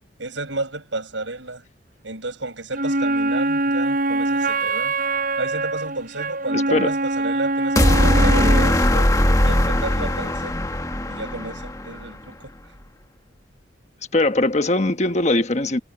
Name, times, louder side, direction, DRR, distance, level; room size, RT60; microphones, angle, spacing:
voice 1, 0.2-1.6 2.0-5.0 5.4-9.1 9.4-10.6 11.1-12.5, right 2 dB, 75° right, 7.0 m, -32 dB
Wind instrument woodwind instrument, 2.7-8.8, right 2 dB, 45° right, 7.7 m, -23 dB
voice 2, 6.5-6.9 14.1-15.8, left 2 dB, 35° left, 1.2 m, -20 dB
sound 1, 7.8-12.0, left 1 dB, 20° left, 1.6 m, -19 dB
head